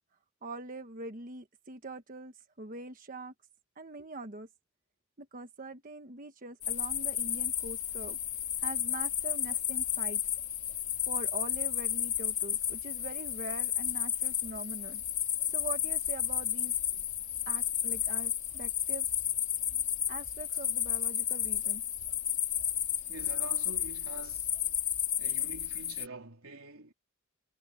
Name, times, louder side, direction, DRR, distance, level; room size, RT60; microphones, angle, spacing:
voice 1, 0.4-3.3 3.8-4.5 5.2-8.2 8.6-10.2 11.1-15.0 15.5-16.7 17.5-19.1 20.1-21.8, right 2 dB, 40° right, 1.2 m, -43 dB
sound 1, 6.6-26.1, left 10 dB, 35° left, 2.9 m, -32 dB
voice 2, 23.1-24.5 25.2-26.9, right 3 dB, 90° right, 3.6 m, -46 dB
head